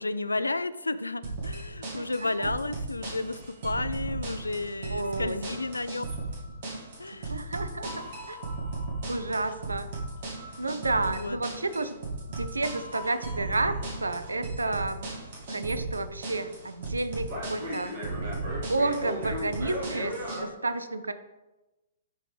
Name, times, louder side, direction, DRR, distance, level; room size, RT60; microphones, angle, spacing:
voice 1, 0.0-6.0 7.0-7.4 11.1-11.4, left 2 dB, 80° left, 14 dB, 0.3 m, -32 dB
sound 1, 1.2-20.4, right 2 dB, 50° right, 2.0 m, -35 dB
voice 2, 1.9-2.7 4.9-5.5 7.3-8.4 9.1-9.9 10.6-12.0 12.4-15.1 15.5-17.9 18.7-21.1, right 2 dB, 80° right, 12 dB, 0.5 m, -31 dB
11.0 x 3.9 x 3.3 m, 1.0 s
figure-of-eight pair, 115°, 0 cm